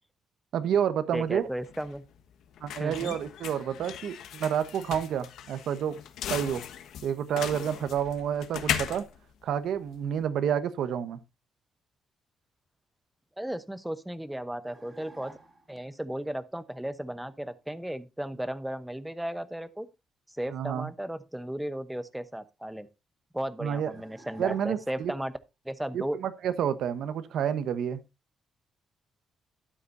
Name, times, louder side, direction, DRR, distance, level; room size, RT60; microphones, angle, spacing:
voice 1, 0.5-1.5 2.6-6.0 6.3-6.7 7.0-9.0 9.4-11.2 20.5-20.9 23.6-23.9 24.4-25.1 25.9-28.0, right 8 dB, 70° right, 1.1 m, -29 dB
voice 2, 1.1-2.0 2.8-3.2 13.4-15.3 15.7-19.9 20.3-22.9 23.3-25.3 25.6-26.2, right 1 dB, 5° right, 0.8 m, -35 dB
sound 1, 1.2-10.2, left 9 dB, 80° left, 1.2 m, -38 dB
sound 2, 14.7-15.8 23.9-25.2, right 2 dB, 20° right, 3.7 m, -50 dB
12.5 x 9.8 x 2.6 m
cardioid pair, 150°, 0 cm